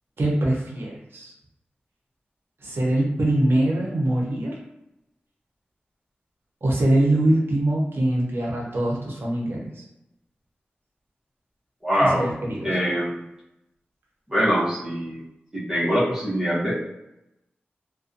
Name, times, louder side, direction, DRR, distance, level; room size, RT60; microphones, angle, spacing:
voice 1, 0.2-1.3 2.6-4.6 6.6-9.8 12.0-12.8, right 1 dB, 75° right, -3 dB, 0.7 m, -23 dB
voice 2, 11.8-12.3 12.6-13.2 14.3-15.2 15.5-16.7, equal, 15° right, -9 dB, 0.7 m, -23 dB
2.5 x 2.1 x 2.6 m, 0.88 s
wide cardioid pair, 95°, 4 cm